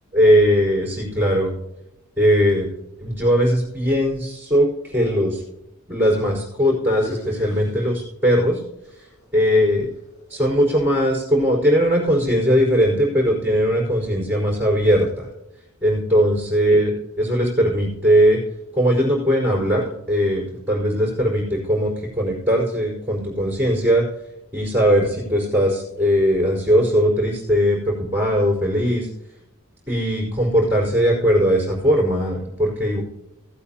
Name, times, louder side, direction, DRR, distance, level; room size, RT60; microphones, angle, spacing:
voice 1, 0.1-1.5 2.2-2.7 3.0-5.4 5.9-8.6 9.3-9.9 10.3-15.3 15.8-18.4 18.7-24.0 24.5-29.1 29.9-33.0, equal, 10° right, -10 dB, 4.3 m, -19 dB
sound 1, 6.8-8.6 8.8-11.1, left 1 dB, 50° left, 4.0 m, -42 dB
17.5 x 8.4 x 2.9 m, 0.86 s
head